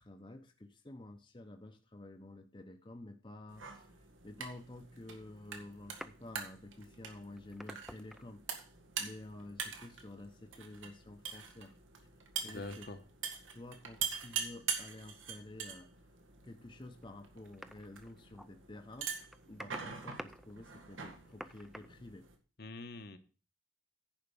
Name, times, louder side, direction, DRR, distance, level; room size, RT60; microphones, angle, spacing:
voice 1, 0.0-3.9 4.2-8.4 9.0-11.8 12.4-12.9 13.5-15.9 16.4-19.2 19.5-22.3, left 2 dB, 25° left, 5 dB, 0.8 m, -50 dB
sound 1, 3.5-22.4, right 7 dB, 90° right, 1.9 m, -44 dB
sound 2, 5.8-6.4 7.2-8.6 9.1-9.7 12.6-12.7 15.8-15.9 17.0-17.1 17.4-18.5 18.7-18.8 19.1-21.9, equal, ahead, 0.4 m, -50 dB
voice 2, 12.4-13.0 22.6-23.2, left 2 dB, 55° left, 8 dB, 1.0 m, -44 dB
10.5 x 5.1 x 6.8 m, 0.36 s
head